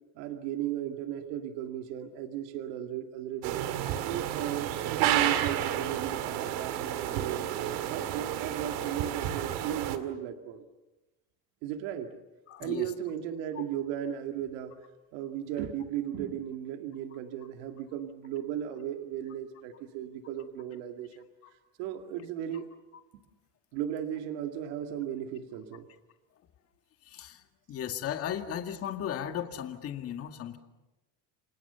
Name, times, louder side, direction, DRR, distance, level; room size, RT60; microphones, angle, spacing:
voice 1, 0.2-3.6 4.0-7.5 7.9-10.6 11.6-12.2 12.6-14.8 15.1-21.3 21.8-22.7 23.7-25.9, right 10 dB, 85° right, 5 dB, 2.2 m, -36 dB
sound 1, 3.4-10.0, right 11 dB, 70° right, 2.4 m, -31 dB
voice 2, 12.5-12.9 13.6-13.7 21.4-21.5 27.0-27.4 27.7-30.6, left 9 dB, 40° left, 6 dB, 2.1 m, -36 dB
29.5 x 25.5 x 6.9 m, 1.1 s
cardioid pair, 155°, 36 cm